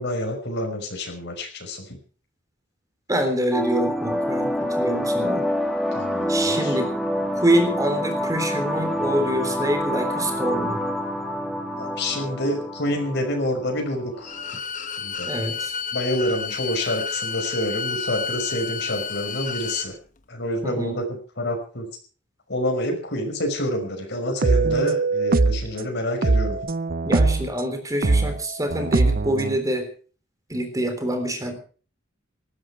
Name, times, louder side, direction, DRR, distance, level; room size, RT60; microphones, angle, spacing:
voice 1, 0.0-2.0 5.9-6.8 11.8-14.4 15.0-15.3 15.9-20.0 20.3-21.9 22.5-26.6, left 1 dB, 60° left, 4 dB, 5.6 m, -28 dB
voice 2, 3.1-5.5 6.3-6.9 7.3-10.8 15.3-15.7 20.6-21.0 27.1-29.9 30.5-31.6, right 1 dB, 20° right, 7 dB, 3.5 m, -25 dB
sound 1, 3.5-14.5, equal, ahead, 2.3 m, -27 dB
Bowed string instrument, 14.2-19.9, left 6 dB, 40° left, 1.3 m, -31 dB
sound 2, 24.4-25.7 26.2-27.5 28.0-29.6, right 3 dB, 50° right, 0.7 m, -21 dB
19.0 x 14.0 x 4.6 m, 0.40 s
head